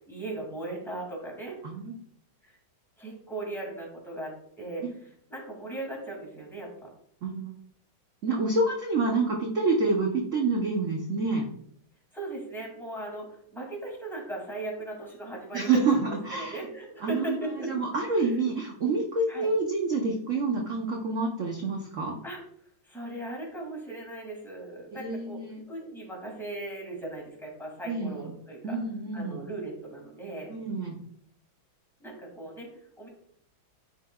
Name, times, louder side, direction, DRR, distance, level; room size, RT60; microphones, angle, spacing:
voice 1, 0.0-1.6 2.4-2.6 3.0-4.8 5.3-6.9 12.1-15.8 16.3-17.7 18.2-18.5 19.3-19.5 22.2-22.4 22.9-25.4 25.7-28.8 29.1-30.5 32.0-32.7 33.0-33.1, right 2 dB, ahead, -2 dB, 2.1 m, -38 dB
voice 2, 1.6-2.0 4.8-4.9 7.2-7.5 8.2-11.5 15.5-16.6 17.0-22.2 24.9-25.6 27.9-28.2 28.6-29.4 30.5-31.0, right 3 dB, 60° right, 0 dB, 0.8 m, -28 dB
9.9 x 4.9 x 2.3 m, 0.66 s
omnidirectional pair, 2.2 m